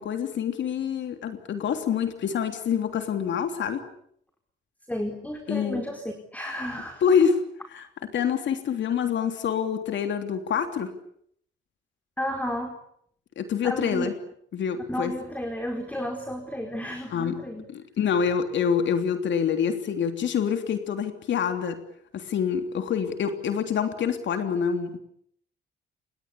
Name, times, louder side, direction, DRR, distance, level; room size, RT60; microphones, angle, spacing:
voice 1, 0.0-3.8 5.5-5.8 7.0-7.4 7.7-7.8 8.1-10.9 13.4-14.1 14.5-15.1 17.1-17.3 17.7-21.8 22.1-25.0, left 7 dB, 65° left, 7 dB, 3.2 m, -26 dB
voice 2, 4.9-6.0 6.3-7.0 12.2-12.8 13.6-14.1 14.9-17.7, equal, 5° left, 4 dB, 4.6 m, -32 dB
29.0 x 23.0 x 8.5 m, 0.68 s
cardioid pair, 90°, 20 cm